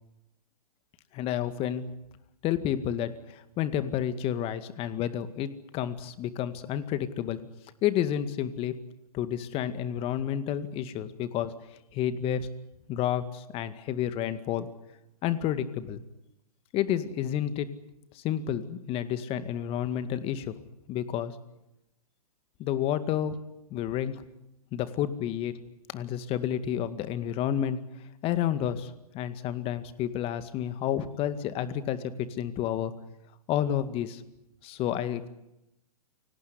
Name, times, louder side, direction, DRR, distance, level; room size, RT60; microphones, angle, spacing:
voice 1, 1.1-1.9 2.4-7.4 7.8-8.7 9.1-11.5 11.9-12.5 12.9-14.7 15.2-16.0 16.7-17.7 18.1-20.5 20.9-21.4 22.6-23.3 23.7-24.2 24.7-25.5 25.9-27.8 28.2-32.9 33.5-34.2 34.6-35.3, left 10 dB, 30° left, 12 dB, 2.1 m, -30 dB
28.0 x 19.0 x 9.7 m, 0.88 s
hypercardioid pair, 125°, 19 cm